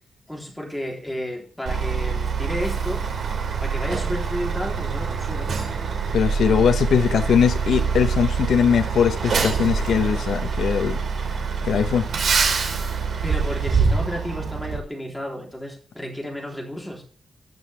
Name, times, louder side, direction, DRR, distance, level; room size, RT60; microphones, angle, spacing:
voice 1, 0.3-3.0 3.6-5.5 13.2-17.0, equal, 5° left, 3.5 m, -32 dB
Truck, 1.7-14.8, right 5 dB, 65° right, 2.4 m, -25 dB
voice 2, 6.1-11.0 11.6-12.1, left 7 dB, 80° left, 1.0 m, -20 dB
17.5 x 6.2 x 3.4 m
wide cardioid pair, 160°, 0 cm